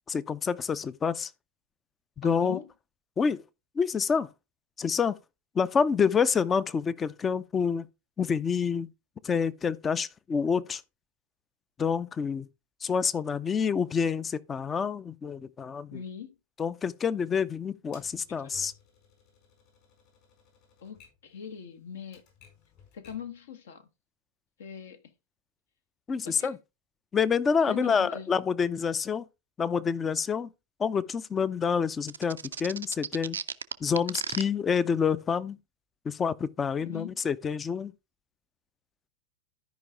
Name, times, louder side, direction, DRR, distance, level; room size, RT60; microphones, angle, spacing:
voice 1, 0.1-1.3 2.2-2.6 3.2-3.4 3.8-4.3 4.8-5.2 5.5-7.9 8.2-8.9 9.2-10.8 11.8-12.5 12.8-16.0 16.6-18.7 26.1-26.6 27.1-29.2 29.6-30.5 30.8-33.4 33.8-35.6 36.1-37.9, left 6 dB, 20° left, 0.6 m, -27 dB
voice 2, 2.2-2.7 15.9-16.3 18.3-18.7 20.8-22.2 22.9-23.9 24.6-25.0 26.2-26.6 27.7-28.3 36.8-37.1, left 8 dB, 60° left, 1.3 m, -41 dB
Typewriter, 17.9-23.4, left 7 dB, 45° left, 4.9 m, -59 dB
sound 1, 32.1-34.4, right 7 dB, 70° right, 0.5 m, -34 dB
12.5 x 5.3 x 3.5 m
figure-of-eight pair, 90°, 0 cm